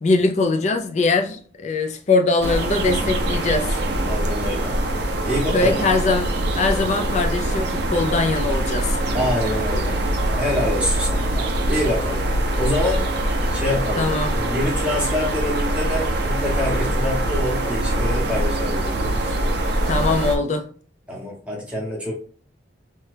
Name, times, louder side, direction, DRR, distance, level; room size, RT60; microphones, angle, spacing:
voice 1, 0.0-3.8 5.5-9.0 14.0-14.3 19.9-20.7, left 3 dB, 35° left, 0.3 m, -21 dB
sound 1, 2.4-20.4, right 1 dB, 55° right, 0.5 m, -23 dB
voice 2, 4.1-4.7 5.2-5.8 9.1-10.0 10.3-12.2 12.6-13.0 13.5-14.1 14.3-19.3 21.1-22.1, left 1 dB, 5° right, 0.8 m, -26 dB
2.9 x 2.2 x 3.2 m
head